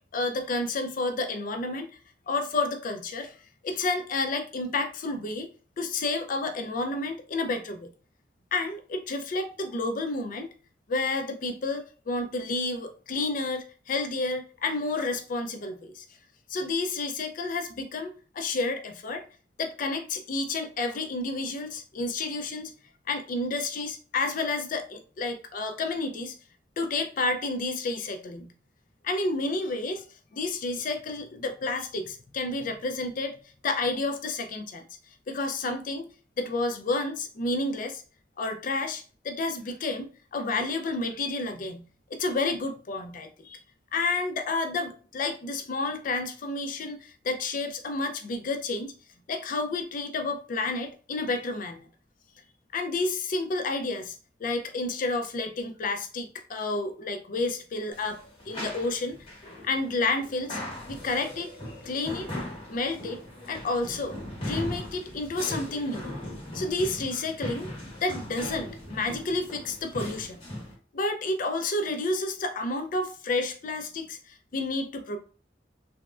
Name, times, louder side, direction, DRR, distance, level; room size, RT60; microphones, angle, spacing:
voice 1, 0.1-1.9 2.3-3.4 3.6-5.5 5.8-7.9 8.5-10.5 10.9-16.0 16.5-19.2 19.6-22.7 23.1-26.3 26.8-28.5 29.0-30.0 30.3-33.4 33.6-34.9 35.3-36.1 36.4-38.0 38.4-43.6 43.9-48.9 49.3-51.9 52.7-54.2 54.4-58.2 58.5-59.2 59.6-60.6 60.9-61.5 61.8-62.3 62.7-63.2 63.5-66.1 66.5-67.7 68.0-70.4 70.9-75.2, left 3 dB, 50° left, 7 dB, 0.4 m, -30 dB
sound 1, 57.9-70.7, left 1 dB, 30° left, 1.0 m, -39 dB
3.5 x 2.0 x 2.4 m, 0.39 s
head